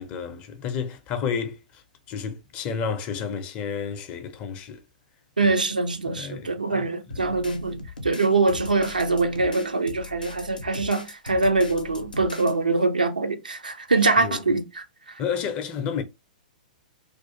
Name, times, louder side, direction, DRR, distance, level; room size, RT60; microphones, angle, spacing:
voice 1, 0.0-1.8 2.1-4.8 5.4-5.5 6.2-6.9 7.1-7.2 14.2-14.4 15.2-16.0, left 6 dB, 30° left, 0.5 m, -31 dB
voice 2, 5.4-14.8, right 3 dB, 80° right, 0.5 m, -23 dB
sound 1, 7.1-12.5, left 4 dB, 80° left, 0.5 m, -40 dB
2.4 x 2.3 x 2.7 m
figure-of-eight pair, 110°, 5 cm